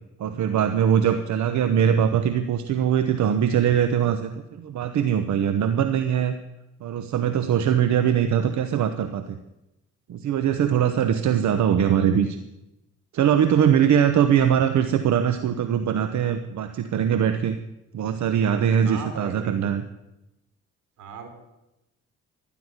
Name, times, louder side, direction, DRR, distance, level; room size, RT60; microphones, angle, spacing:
voice 1, 0.2-6.3 6.8-9.2 10.1-12.4 13.1-17.6 17.9-19.8, right 8 dB, 70° right, 9 dB, 1.0 m, -22 dB
voice 2, 18.8-19.6 21.0-21.3, right 5 dB, 90° right, 6 dB, 3.5 m, -37 dB
12.5 x 11.5 x 9.9 m, 0.94 s
cardioid pair, 90°, 30 cm